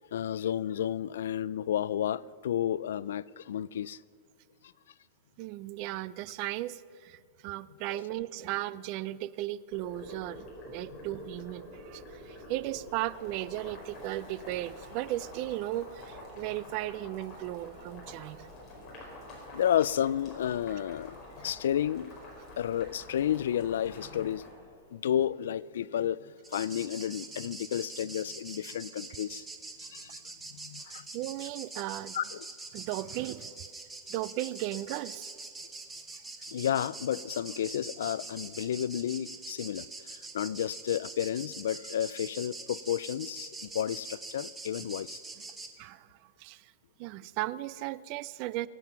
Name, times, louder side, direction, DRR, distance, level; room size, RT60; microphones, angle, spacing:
voice 1, 0.1-4.0 7.9-8.0 19.5-22.1 22.6-24.4 24.9-29.4 29.9-30.1 30.5-31.1 32.1-32.5 36.5-45.2, left 10 dB, 85° left, 0.4 m, -31 dB
voice 2, 5.4-18.5 31.1-32.1 32.7-33.5 34.1-35.3 45.8-46.1 46.4-46.6 47.0-48.7, right 15 dB, 40° right, 0.4 m, -36 dB
Boiling, 9.7-24.5, left 1 dB, 25° left, 5.0 m, -48 dB
sound 1, 26.4-45.7, right 3 dB, 10° right, 1.2 m, -44 dB
22.5 x 9.1 x 5.8 m
supercardioid pair, 155°, 0 cm